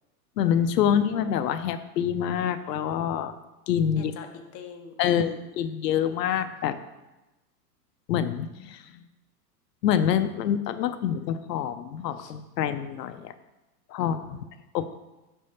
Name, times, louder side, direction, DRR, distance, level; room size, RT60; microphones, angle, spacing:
voice 1, 0.4-3.3 3.7-4.1 5.0-6.8 8.1-9.0 9.8-13.3 13.9-14.2 14.7-14.9, left 9 dB, 80° left, 10 dB, 0.7 m, -26 dB
voice 2, 4.0-5.4 12.2-12.3 14.0-14.5, left 5 dB, 30° left, 4 dB, 0.6 m, -43 dB
5.3 x 3.4 x 5.5 m, 1.0 s
hypercardioid pair, 120°, 48 cm